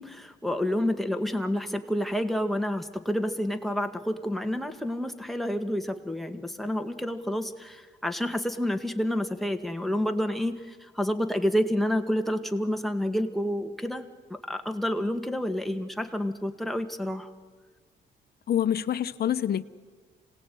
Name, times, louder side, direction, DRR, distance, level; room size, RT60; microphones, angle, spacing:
voice 1, 0.0-17.3, equal, ahead, 5 dB, 1.9 m, -29 dB
voice 2, 18.5-19.6, left 10 dB, 55° left, 10 dB, 0.9 m, -26 dB
26.0 x 18.5 x 9.2 m, 1.5 s
cardioid pair, 90°, 20 cm